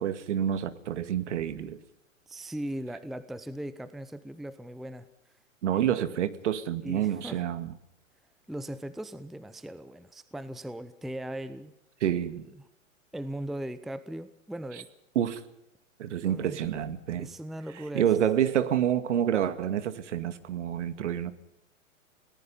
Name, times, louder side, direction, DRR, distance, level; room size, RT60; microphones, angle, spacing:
voice 1, 0.0-1.8 5.6-7.7 12.0-12.4 15.2-15.4 16.0-17.3 17.9-21.3, right 10 dB, 60° right, 12 dB, 2.2 m, -28 dB
voice 2, 2.3-5.1 5.7-5.9 6.8-7.4 8.5-11.7 12.1-12.3 13.1-14.9 16.2-16.6 17.2-18.1, right 1 dB, ahead, 14 dB, 0.7 m, -38 dB
29.5 x 18.5 x 5.5 m, 0.80 s
figure-of-eight pair, 110°, 39 cm